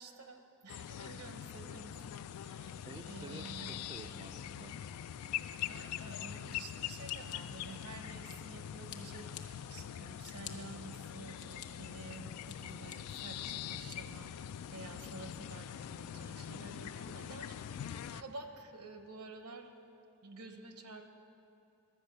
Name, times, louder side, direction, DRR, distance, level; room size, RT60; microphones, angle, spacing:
voice 1, 0.0-3.8 5.7-14.3 14.7-19.7 20.2-21.0, right 3 dB, 75° right, 6 dB, 1.0 m, -50 dB
sound 1, 0.7-18.2, left 10 dB, 75° left, 0.3 m, -43 dB
voice 2, 2.8-4.8, right 3 dB, 20° right, 5 dB, 0.4 m, -51 dB
Scissors, 7.0-8.5 8.9-9.4 9.9-10.5 11.1-11.7 12.1-13.0 13.5-14.0, left 10 dB, 50° left, 0.9 m, -50 dB
11.5 x 8.4 x 6.6 m, 2.6 s
head